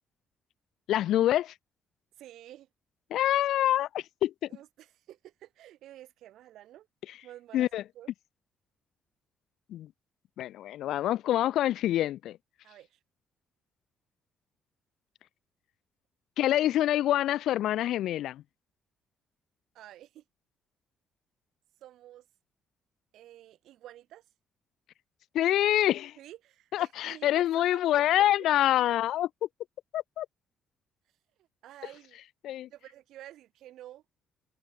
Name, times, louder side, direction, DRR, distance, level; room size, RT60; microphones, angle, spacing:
voice 1, 0.9-1.5 3.1-4.3 7.5-7.8 9.7-9.9 10.4-12.4 16.4-18.4 25.3-26.2 26.7-29.3 29.9-30.3 32.4-32.7, left 13 dB, 75° left, 0.4 m, -26 dB
voice 2, 2.2-2.7 4.5-6.9 7.2-8.1 12.6-13.0 19.7-20.2 21.8-22.3 23.1-24.3 26.2-28.3 31.4-32.2 32.7-34.0, right 13 dB, 80° right, 2.9 m, -50 dB
cardioid pair, 155°, 0 cm